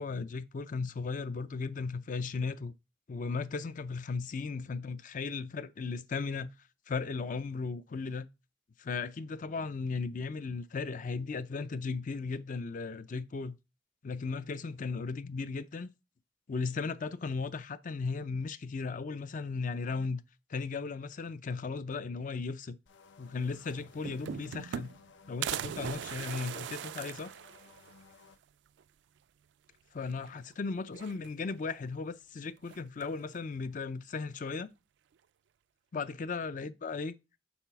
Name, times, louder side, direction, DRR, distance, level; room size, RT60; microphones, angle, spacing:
voice 1, 0.0-2.7 3.1-6.5 6.9-8.3 8.8-13.6 14.0-15.9 16.5-20.2 20.5-22.8 23.2-24.9 25.3-27.3 29.9-34.7 35.9-37.1, left 4 dB, 45° left, 0.4 m, -36 dB
sound 1, 22.9-28.4, left 5 dB, 80° left, 0.7 m, -59 dB
sound 2, 23.4-23.5 23.8-25.1 25.4-28.0 28.4-28.5 28.8-28.9 30.0-30.5 30.9-31.6 32.7-33.2, right 9 dB, 70° right, 0.3 m, -40 dB
7.1 x 4.7 x 4.6 m
head